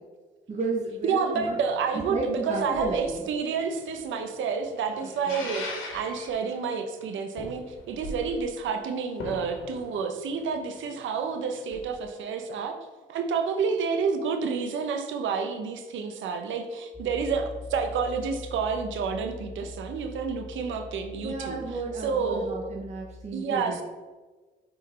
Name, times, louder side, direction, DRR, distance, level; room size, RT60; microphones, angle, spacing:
voice 1, 0.5-1.6 2.1-3.2 5.3-5.5 21.2-23.8, right 3 dB, 35° right, -1 dB, 0.9 m, -32 dB
voice 2, 1.0-12.8 13.1-22.7 23.3-23.8, right 5 dB, 75° right, 6 dB, 0.8 m, -29 dB
sound 1, 1.3-12.0 12.4-12.5, left 3 dB, 80° left, 1.6 m, -43 dB
Piano, 16.9-23.2, left 3 dB, 5° right, 1.6 m, -43 dB
5.5 x 4.4 x 4.2 m, 1.3 s
cardioid pair, 90°, 20 cm